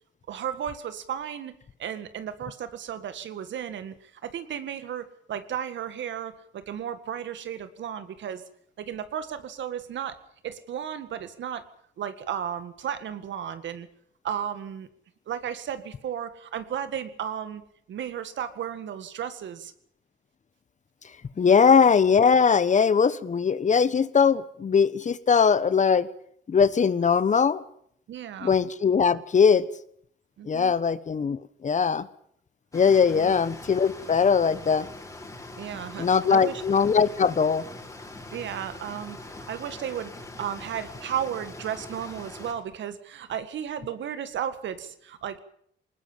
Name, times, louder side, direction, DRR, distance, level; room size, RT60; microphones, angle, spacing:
voice 1, 0.3-1.5 1.8-8.4 8.8-10.2 10.4-11.6 12.0-13.9 14.2-14.9 15.3-17.6 17.9-19.7 28.1-28.5 30.4-30.7 33.1-33.3 35.6-36.6 38.3-39.2 39.5-45.4, right 9 dB, 70° right, 11 dB, 1.9 m, -34 dB
voice 2, 21.4-26.1 26.5-27.6 28.4-29.7 30.5-32.1 32.7-34.9 36.0-37.7, left 6 dB, 40° left, 16 dB, 1.1 m, -21 dB
sound 1, 32.7-42.5, left 2 dB, 15° left, 5.1 m, -42 dB
20.0 x 20.0 x 7.5 m, 0.66 s
cardioid pair, 90°, 20 cm